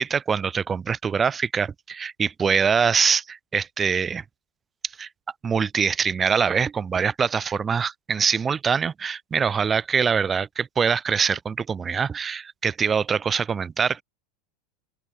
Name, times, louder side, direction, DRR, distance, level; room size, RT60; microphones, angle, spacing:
voice 1, 0.0-4.2 5.0-5.1 5.4-14.0, right 6 dB, 25° right, 0.4 m, -24 dB
open air
hypercardioid pair, 100°, 0 cm